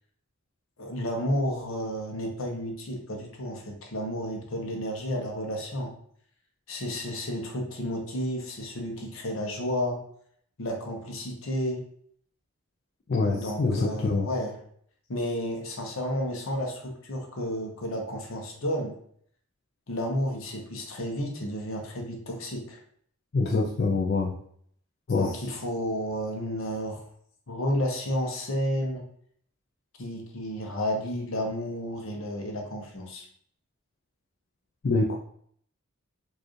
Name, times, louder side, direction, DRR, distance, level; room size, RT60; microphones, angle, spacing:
voice 1, 0.8-5.9 6.7-10.0 10.6-11.8 13.3-14.6 15.1-19.0 19.9-22.8 25.1-27.1 27.5-29.0 30.0-33.2, equal, 60° left, 2 dB, 0.9 m, -31 dB
voice 2, 13.1-14.3 23.3-24.3 25.1-25.3 34.8-35.1, left 3 dB, 45° left, -2 dB, 0.4 m, -25 dB
4.5 x 2.5 x 3.1 m, 0.64 s
head